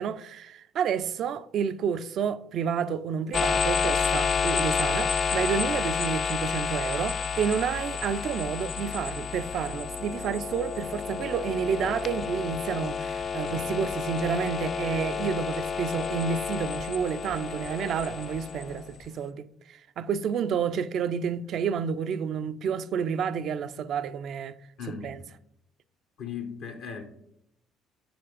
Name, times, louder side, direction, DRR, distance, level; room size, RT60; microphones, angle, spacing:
voice 1, 0.0-24.6 24.9-25.2, right 7 dB, 60° right, 0.4 m, -30 dB
sound 1, 3.3-19.1, left 6 dB, 50° left, 0.4 m, -30 dB
voice 2, 24.8-25.2 26.2-27.1, left 6 dB, 70° left, 1.0 m, -38 dB
6.0 x 4.7 x 4.9 m
hypercardioid pair, 60°, 0 cm